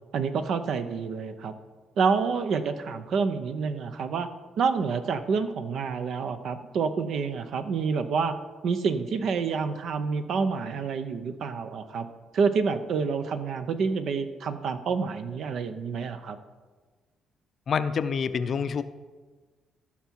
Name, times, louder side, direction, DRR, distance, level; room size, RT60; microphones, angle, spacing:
voice 1, 0.1-1.5 2.0-4.3 4.6-8.3 8.6-12.1 12.3-16.4, right 5 dB, 70° right, 10 dB, 0.7 m, -28 dB
voice 2, 17.7-18.8, left 6 dB, 50° left, 12 dB, 0.5 m, -27 dB
14.0 x 5.8 x 4.6 m, 1.3 s
cardioid pair, 90°, 0 cm